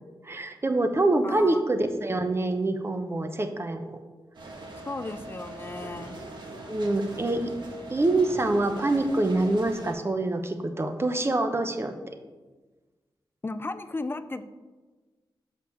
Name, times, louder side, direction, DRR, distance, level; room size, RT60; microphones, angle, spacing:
voice 1, 0.2-4.0 6.7-7.5 7.9-12.2, right 2 dB, 30° right, 7 dB, 0.8 m, -25 dB
voice 2, 1.2-1.6 4.9-6.2 13.4-14.4, left 2 dB, 25° left, 12 dB, 0.5 m, -35 dB
sound 1, 4.3-9.9, right 2 dB, 60° right, 1.6 m, -42 dB
6.3 x 5.2 x 6.7 m, 1.3 s
cardioid pair, 70°, 9 cm